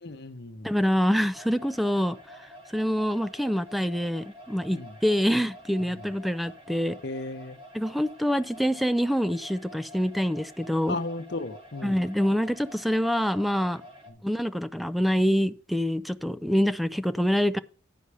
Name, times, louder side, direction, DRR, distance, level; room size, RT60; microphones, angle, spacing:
voice 1, 0.0-0.7 4.7-4.9 5.8-6.1 7.0-7.6 10.9-12.0, left 2 dB, 60° left, 0.9 m, -35 dB
voice 2, 0.6-2.2 2.7-7.0 7.7-11.0 11.8-13.8 14.2-17.6, equal, ahead, 0.4 m, -26 dB
sound 1, 1.3-14.1, equal, 30° right, 2.5 m, -48 dB
11.0 x 4.9 x 5.5 m
head